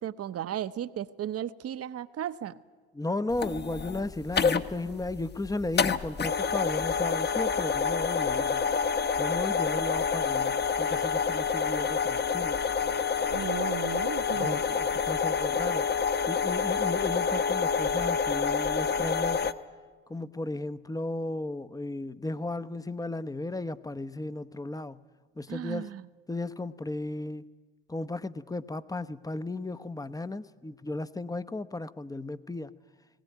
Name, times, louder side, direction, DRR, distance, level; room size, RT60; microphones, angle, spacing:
voice 1, 0.0-2.6 13.3-14.6 25.5-26.0, right 10 dB, 45° right, 14 dB, 0.9 m, -35 dB
voice 2, 2.9-8.6 9.2-12.6 14.3-15.9 16.3-19.5 20.1-25.0 25.4-25.8 26.3-27.4 27.9-32.7, left 2 dB, 10° left, 12 dB, 0.9 m, -35 dB
sound 1, 3.3-19.5, left 6 dB, 30° left, 1.2 m, -28 dB
19.5 x 18.0 x 9.3 m, 1.4 s
hypercardioid pair, 65°, 35 cm